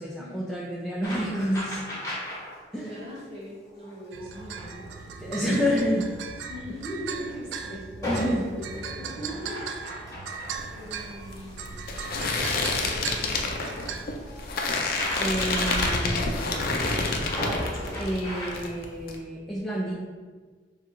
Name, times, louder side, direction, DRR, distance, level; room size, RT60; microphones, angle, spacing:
voice 1, 0.0-1.6 2.7-2.9 5.2-6.1 8.0-8.5 15.2-16.5 18.0-19.9, equal, ahead, -6 dB, 0.4 m, -28 dB
sound 1, 1.0-2.6 2.9-3.2 3.8-5.0 5.5-5.6 6.0-6.1 6.5-7.7 8.0-18.5, equal, 20° left, 1.0 m, -36 dB
voice 2, 1.2-1.7 2.1-2.4 2.7-5.9 6.5-9.6 9.9-10.4 10.7-11.7 12.8-14.1, equal, 30° right, -5 dB, 1.1 m, -41 dB
sound 2, 4.1-14.1, right 6 dB, 80° right, 0.3 m, -38 dB
sound 3, 10.5-18.2 18.5-19.1, left 3 dB, 55° left, 0.5 m, -29 dB
3.7 x 2.3 x 4.5 m, 1.5 s
head